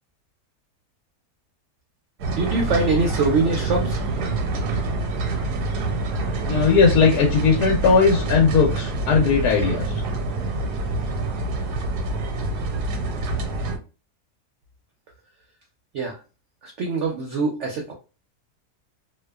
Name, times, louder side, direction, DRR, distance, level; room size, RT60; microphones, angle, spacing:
sound 1, 2.2-13.8, right 2 dB, 90° right, 1.2 m, -26 dB
voice 1, 2.3-4.0 15.9-16.2 16.6-17.9, right 3 dB, 65° right, 1 dB, 0.7 m, -23 dB
voice 2, 6.5-10.0, left 5 dB, 80° left, 0 dB, 1.1 m, -18 dB
2.7 x 2.2 x 2.2 m, 0.33 s
omnidirectional pair, 1.7 m